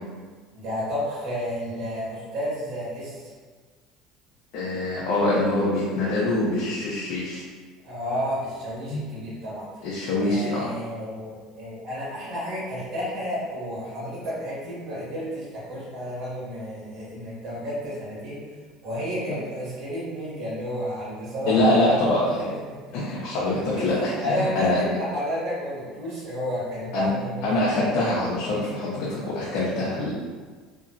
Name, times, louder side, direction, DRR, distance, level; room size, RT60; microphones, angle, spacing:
voice 1, 0.5-3.2 7.8-9.7 10.1-18.4 18.8-22.0 22.4-22.8 23.8-23.9 24.2-27.7, equal, 50° right, -7 dB, 1.3 m, -31 dB
voice 2, 4.5-7.4 8.9-9.0 9.8-10.7 21.5-22.4 22.9-24.8 26.9-27.1 27.4-30.1, left 1 dB, 65° left, -8 dB, 0.6 m, -24 dB
2.9 x 2.3 x 2.6 m, 1.5 s
hypercardioid pair, 85°, 0 cm